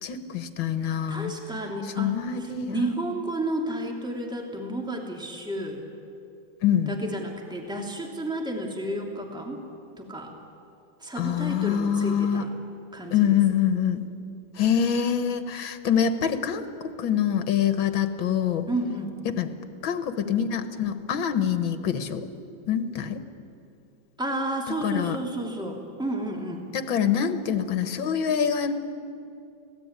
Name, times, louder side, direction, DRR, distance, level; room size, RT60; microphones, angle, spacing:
voice 1, 0.0-1.3 2.0-2.9 6.6-6.9 11.2-12.4 13.1-14.0 14.6-16.7 17.0-18.6 19.3-19.5 19.8-22.2 22.7-23.2 24.8-25.2 26.7-28.7, left 8 dB, 75° left, 10 dB, 2.1 m, -25 dB
voice 2, 0.8-5.8 6.9-9.6 10.0-10.3 11.0-12.5 12.9-13.4 18.7-19.1 24.2-26.7, right 1 dB, ahead, 1 dB, 2.6 m, -32 dB
25.5 x 17.5 x 9.7 m, 2.6 s
omnidirectional pair, 2.2 m